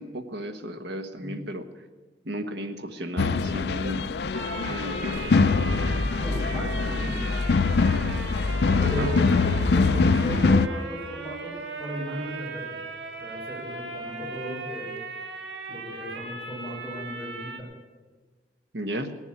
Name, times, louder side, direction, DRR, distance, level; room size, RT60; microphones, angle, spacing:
voice 1, 0.0-1.6 2.2-4.1 4.6-5.3 8.8-9.1 18.7-19.1, equal, 70° right, 7 dB, 1.3 m, -34 dB
sound 1, 3.2-10.7, left 4 dB, 65° left, 0.5 m, -23 dB
sound 2, 4.3-17.6, right 3 dB, 90° right, 1.7 m, -38 dB
sound 3, 5.3-10.8, equal, 50° left, 3.0 m, -41 dB
voice 2, 6.1-7.3 8.8-9.4 9.7-12.8 13.2-15.0 15.7-17.7, equal, 5° left, -5 dB, 6.3 m, -36 dB
18.5 x 7.2 x 9.5 m, 1.3 s
head